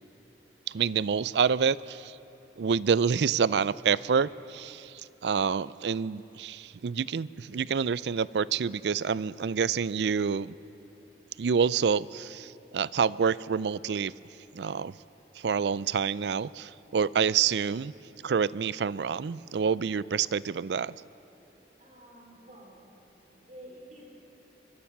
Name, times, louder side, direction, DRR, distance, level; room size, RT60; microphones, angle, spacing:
voice 1, 0.7-2.2 2.6-10.5 11.4-14.1 14.5-14.9 15.4-17.9 18.2-21.0, right 6 dB, 75° right, 19 dB, 0.4 m, -27 dB
voice 2, 21.8-22.9 23.3-24.1, right 1 dB, 45° right, -1 dB, 4.8 m, -50 dB
23.5 x 22.5 x 5.9 m, 3.0 s
head